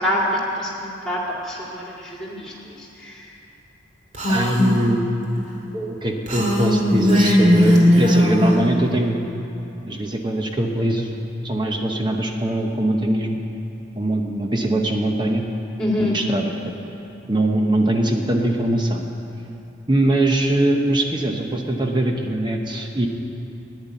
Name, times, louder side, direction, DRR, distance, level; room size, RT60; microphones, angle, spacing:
voice 1, 0.0-3.3 15.8-16.2, equal, 5° left, -4 dB, 2.3 m, -26 dB
Female speech woman speaking, 4.1-4.8 6.3-8.5, left 1 dB, 40° right, 2.4 m, -17 dB
voice 2, 4.3-5.0 5.7-9.2 9.9-11.1 11.4-13.4 14.0-15.4 16.0-16.5 17.3-19.1 19.9-23.1, right 1 dB, 25° right, 2 dB, 0.8 m, -22 dB
11.0 x 9.9 x 9.1 m, 3.0 s
head